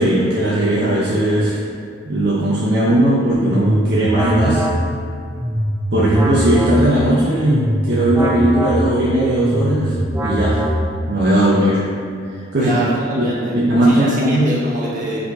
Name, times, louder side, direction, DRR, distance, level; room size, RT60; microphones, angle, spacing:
voice 1, 0.0-1.6 2.0-4.7 5.9-9.9 10.2-10.6 11.1-11.8 12.5-12.8 13.1-13.2 13.5-14.5, right 1 dB, 60° right, -7 dB, 0.8 m, -17 dB
sound 1, 3.2-11.2, equal, 15° right, 0.5 m, -22 dB
voice 2, 12.6-13.5 13.8-15.2, right 1 dB, 45° right, -6 dB, 1.5 m, -25 dB
5.0 x 4.2 x 4.7 m, 2.3 s
head